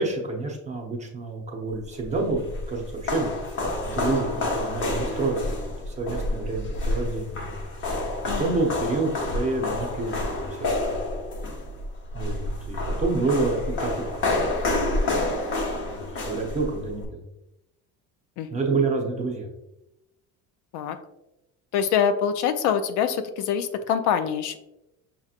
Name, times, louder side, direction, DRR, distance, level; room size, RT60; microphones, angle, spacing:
voice 1, 0.0-3.3 3.8-5.5 5.9-7.5 8.2-11.0 12.1-14.2 15.9-17.2 18.5-19.5, right 3 dB, 20° right, 0 dB, 0.8 m, -28 dB
sound 1, 2.0-17.1, left 2 dB, 40° left, 1.0 m, -29 dB
voice 2, 21.7-24.6, left 8 dB, 65° left, 10 dB, 0.4 m, -24 dB
5.7 x 2.9 x 2.4 m, 0.90 s
cardioid pair, 145°, 31 cm